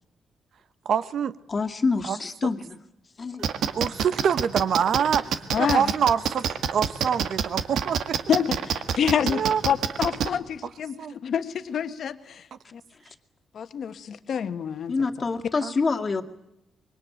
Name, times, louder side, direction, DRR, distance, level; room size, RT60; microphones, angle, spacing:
voice 1, 0.8-1.3 2.1-2.2 2.4-2.5 3.7-8.2 9.3-9.6 10.6-10.7 11.0-11.2 15.6-15.7, right 7 dB, 60° right, 14 dB, 1.2 m, -25 dB
voice 2, 1.5-2.8 3.2-3.5 14.9-16.2, left 4 dB, 30° left, 6 dB, 2.2 m, -26 dB
sound 1, 3.4-10.3, right 8 dB, 80° right, 1.6 m, -26 dB
voice 3, 5.5-5.9 8.3-12.4 12.7-12.8 13.5-14.9, left 8 dB, 55° left, 10 dB, 1.5 m, -27 dB
25.5 x 23.0 x 9.0 m, 0.86 s
cardioid pair, 135°, 0 cm